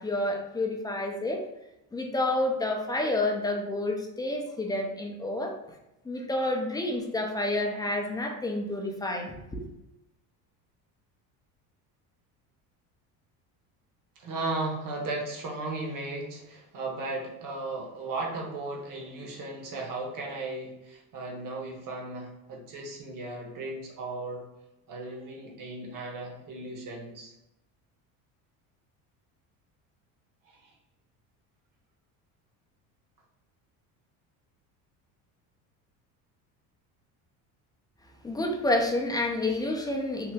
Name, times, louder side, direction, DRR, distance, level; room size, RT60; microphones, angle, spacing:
voice 1, 0.0-1.5 1.9-5.5 6.0-9.7 38.2-40.3, left 2 dB, 10° left, 1 dB, 0.3 m, -29 dB
voice 2, 14.2-24.4 24.9-27.3 30.5-30.7, right 2 dB, 45° right, 0 dB, 1.0 m, -36 dB
2.8 x 2.1 x 3.4 m, 0.90 s
supercardioid pair, 80°, 44 cm